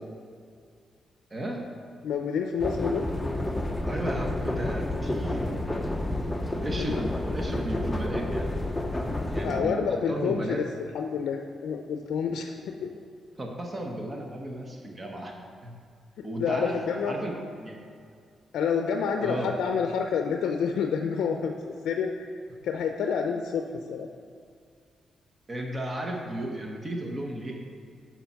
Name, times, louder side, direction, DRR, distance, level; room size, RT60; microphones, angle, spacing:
voice 1, 1.3-1.6 3.8-5.8 6.5-8.5 9.3-10.6 13.3-15.7 16.2-17.8 19.2-19.5 25.5-27.6, right 1 dB, 25° right, 0 dB, 1.1 m, -34 dB
voice 2, 2.0-3.1 6.7-7.0 9.4-12.9 16.2-17.1 18.5-22.3 22.6-24.1, left 6 dB, 85° left, 4 dB, 0.5 m, -29 dB
sound 1, 2.6-9.6, left 1 dB, 10° left, 0.7 m, -30 dB
6.9 x 5.7 x 5.8 m, 2.3 s
cardioid pair, 105°, 0 cm